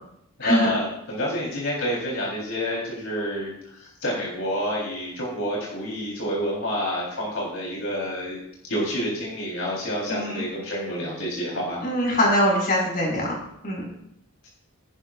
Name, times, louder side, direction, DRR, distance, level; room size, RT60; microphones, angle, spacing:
voice 1, 0.4-8.4 8.7-11.8 14.4-14.5, equal, 75° left, -4 dB, 3.9 m, -28 dB
voice 2, 10.1-10.4 11.8-13.4 13.6-13.9, equal, 45° left, -2 dB, 5.4 m, -22 dB
18.0 x 11.5 x 2.5 m, 0.77 s
head